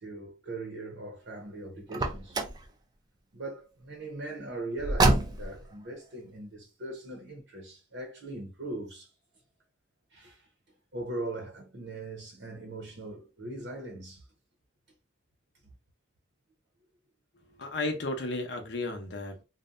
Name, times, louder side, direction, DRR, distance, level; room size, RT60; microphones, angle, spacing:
voice 1, 0.0-2.4 3.3-9.1 10.1-10.5 10.9-14.3, right 2 dB, 75° right, 0.7 m, -40 dB
Car, 1.9-2.7 4.8-5.7, right 2 dB, 20° right, 0.3 m, -26 dB
voice 2, 17.4-19.4, left 2 dB, 65° left, 0.6 m, -34 dB
2.6 x 2.1 x 2.4 m
head